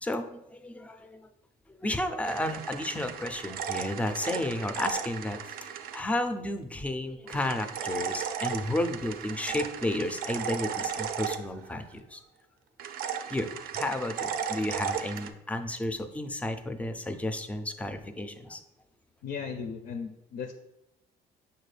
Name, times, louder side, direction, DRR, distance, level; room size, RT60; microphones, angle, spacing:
voice 1, 0.0-1.2 1.8-12.2 13.3-13.5 13.7-18.6, left 1 dB, 10° left, 8 dB, 0.3 m, -32 dB
sound 1, 2.2-6.0 7.3-11.9 12.8-15.3, right 8 dB, 60° right, 0.4 m, -35 dB
voice 2, 19.2-20.5, left 6 dB, 65° left, 6 dB, 0.4 m, -36 dB
6.5 x 2.2 x 3.2 m, 0.88 s
cardioid pair, 110°, 17 cm